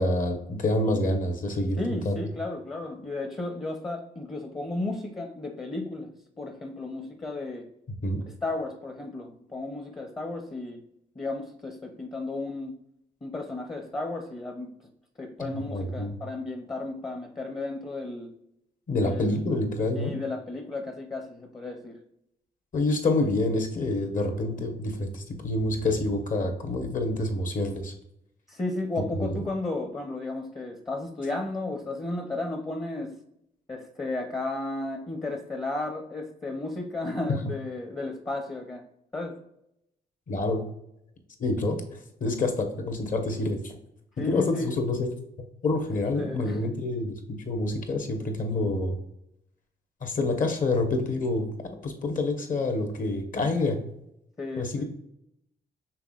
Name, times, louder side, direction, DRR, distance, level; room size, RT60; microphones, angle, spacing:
voice 1, 0.0-2.2 8.0-8.2 15.4-16.2 18.9-20.1 22.7-27.9 29.1-29.4 40.3-40.6 41.4-43.7 44.3-45.1 45.6-49.0 50.0-51.5 51.8-53.8 54.6-54.8, left 2 dB, 50° left, 5 dB, 1.1 m, -27 dB
voice 2, 1.8-6.1 6.4-7.7 8.4-10.8 11.2-12.7 13.2-14.7 15.2-18.3 19.0-19.5 19.9-22.0 28.5-33.2 33.7-39.4 44.2-44.7 46.2-46.7 54.4-54.8, left 2 dB, 20° left, 3 dB, 0.7 m, -34 dB
5.8 x 3.4 x 2.4 m, 0.79 s
cardioid pair, 80°, 17 cm